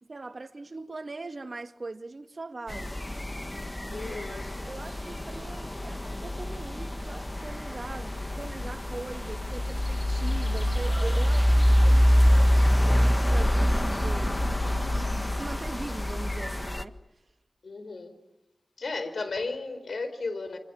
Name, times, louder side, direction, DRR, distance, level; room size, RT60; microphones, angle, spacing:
voice 1, 0.0-3.0 3.9-14.4 14.6-17.0, right 3 dB, 55° right, 2.0 m, -41 dB
sound 1, 2.7-16.8, equal, 20° left, 1.6 m, -25 dB
voice 2, 3.9-4.5 17.6-18.2 18.8-20.6, left 3 dB, 75° left, 4.6 m, -34 dB
28.5 x 27.5 x 7.2 m
cardioid pair, 45°, 0 cm